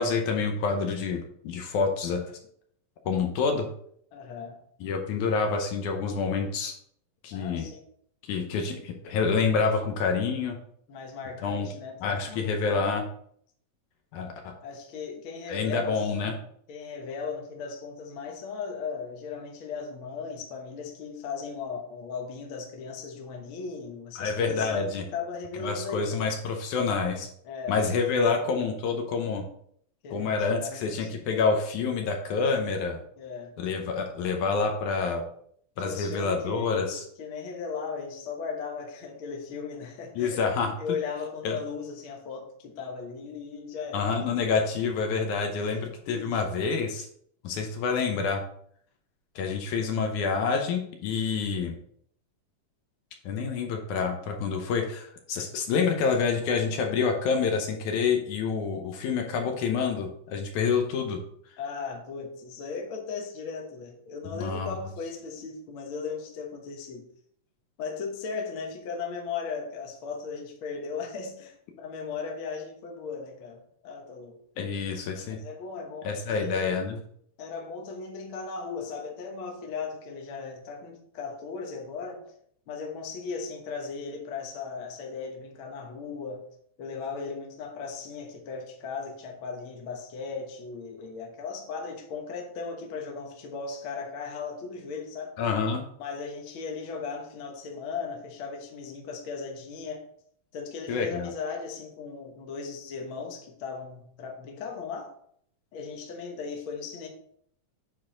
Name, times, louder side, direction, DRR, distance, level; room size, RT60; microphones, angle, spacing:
voice 1, 0.0-2.2 3.1-3.7 4.8-6.8 7.2-7.7 8.3-10.6 11.4-11.7 12.0-13.1 14.1-14.5 15.5-16.3 24.2-25.1 25.6-27.3 27.7-29.4 30.1-33.0 33.6-35.2 35.8-37.0 40.2-40.8 41.4-41.6 43.9-47.1 47.4-48.4 49.4-51.8 53.3-61.2 64.3-64.8 74.6-75.4 76.0-77.0 95.4-95.8 100.9-101.3, left 5 dB, 75° left, 3 dB, 2.1 m, -27 dB
voice 2, 4.1-4.6 7.3-7.8 10.9-12.5 14.6-16.4 16.7-26.3 27.4-28.5 30.0-31.3 33.2-33.6 35.8-40.4 40.8-44.4 45.6-46.6 61.6-67.0 67.8-74.4 75.3-76.9 77.4-82.2 82.7-86.4 86.8-95.4 96.0-100.0 100.5-105.1 105.7-107.1, left 5 dB, 60° left, 2 dB, 1.4 m, -37 dB
8.8 x 4.0 x 3.8 m, 0.65 s
omnidirectional pair, 3.7 m